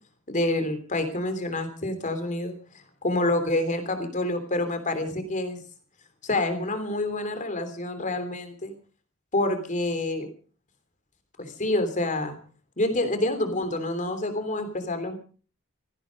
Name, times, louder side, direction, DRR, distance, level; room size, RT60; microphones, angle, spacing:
voice 1, 0.3-2.5 3.0-5.6 6.2-8.7 9.3-10.3 11.4-12.4 12.8-15.2, left 2 dB, 35° left, 8 dB, 3.2 m, -27 dB
17.0 x 15.5 x 5.2 m, 0.41 s
head